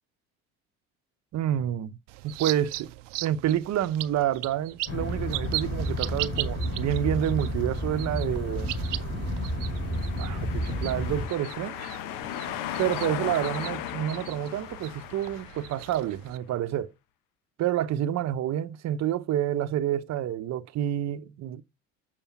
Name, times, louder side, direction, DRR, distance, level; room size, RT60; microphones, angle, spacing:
voice 1, 1.3-2.0 2.2-2.9 3.2-8.7 10.2-11.9 12.8-16.9 17.6-21.6, right 11 dB, 50° right, 0.8 m, -28 dB
sound 1, 2.1-16.4, right 18 dB, 85° right, 0.6 m, -39 dB
sound 2, 4.9-11.3, equal, 30° left, 4.3 m, -31 dB
sound 3, 9.4-16.2, left 11 dB, 65° left, 1.0 m, -37 dB
7.1 x 4.9 x 7.0 m
hypercardioid pair, 75°, 36 cm